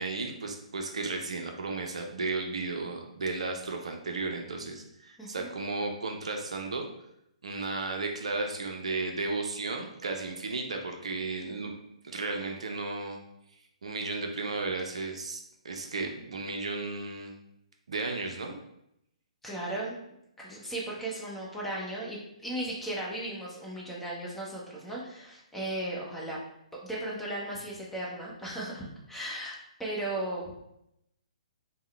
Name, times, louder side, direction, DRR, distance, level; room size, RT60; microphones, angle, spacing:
voice 1, 0.0-6.9 7.4-11.7 12.0-13.2 13.8-17.3 17.9-18.6, right 3 dB, 65° right, 3 dB, 0.5 m, -34 dB
voice 2, 5.2-5.5 19.4-20.0 20.4-26.4 26.8-29.5 29.8-30.6, right 1 dB, 5° left, -5 dB, 0.8 m, -36 dB
3.6 x 2.1 x 3.2 m, 0.79 s
figure-of-eight pair, 125°, 4 cm